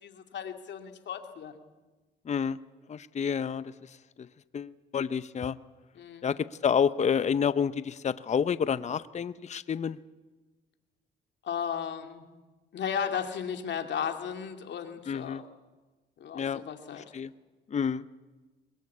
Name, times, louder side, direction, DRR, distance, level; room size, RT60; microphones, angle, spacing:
voice 1, 0.0-1.6 5.9-6.3 11.4-12.2 12.7-15.4 16.2-17.0, left 7 dB, 65° left, 6 dB, 2.5 m, -35 dB
voice 2, 2.3-2.6 2.9-3.7 4.5-5.6 6.2-10.0 15.1-15.4 16.3-16.6 17.1-17.3 17.7-18.3, left 7 dB, 35° left, 16 dB, 0.7 m, -29 dB
22.5 x 20.0 x 8.5 m, 1.2 s
cardioid pair, 90°, 20 cm